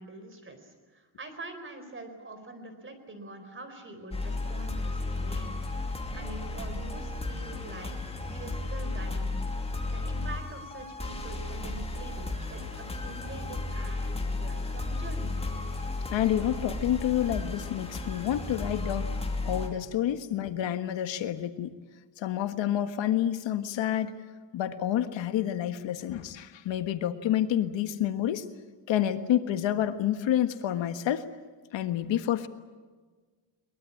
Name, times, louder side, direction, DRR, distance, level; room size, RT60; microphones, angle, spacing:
voice 1, 0.0-7.9 8.3-9.5 9.9-15.3, right 2 dB, 25° right, 7 dB, 4.4 m, -45 dB
sound 1, 4.1-19.7, left 2 dB, 15° left, 2.9 m, -34 dB
voice 2, 16.1-19.1 19.4-21.7 22.2-24.1 24.5-28.4 28.9-31.2 31.7-32.5, left 11 dB, 90° left, 9 dB, 1.6 m, -28 dB
22.5 x 21.5 x 8.6 m, 1.4 s
cardioid pair, 145°, 44 cm